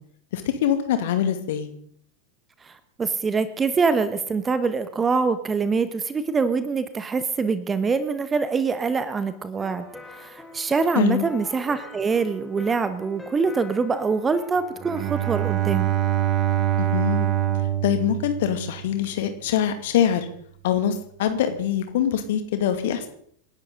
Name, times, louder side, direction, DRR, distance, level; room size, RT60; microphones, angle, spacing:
voice 1, 0.3-1.7 11.0-11.3 16.8-17.3 17.8-20.3 20.6-23.1, left 9 dB, 55° left, 8 dB, 2.4 m, -24 dB
voice 2, 2.6-15.9, right 4 dB, 15° right, 13 dB, 1.1 m, -24 dB
sound 1, 9.6-16.1, left 1 dB, 5° left, 2.9 m, -45 dB
Bowed string instrument, 14.8-19.1, right 12 dB, 30° right, 1.8 m, -24 dB
28.0 x 11.5 x 3.9 m, 0.65 s
figure-of-eight pair, 90°, 0 cm